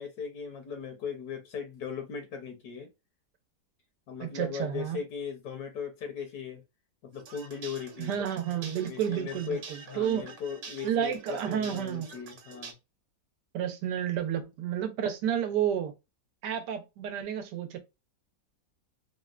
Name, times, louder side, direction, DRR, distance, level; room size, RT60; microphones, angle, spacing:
voice 1, 0.0-2.9 4.1-6.6 7.0-8.2 8.9-12.7, left 6 dB, 75° left, 1.2 m, -38 dB
voice 2, 4.2-5.0 8.0-10.3 10.8-12.1 13.5-15.9 16.4-17.8, right 9 dB, 90° right, 1.3 m, -31 dB
sound 1, 7.1-12.7, right 5 dB, 65° right, 1.3 m, -47 dB
3.5 x 2.1 x 2.3 m
omnidirectional pair, 1.8 m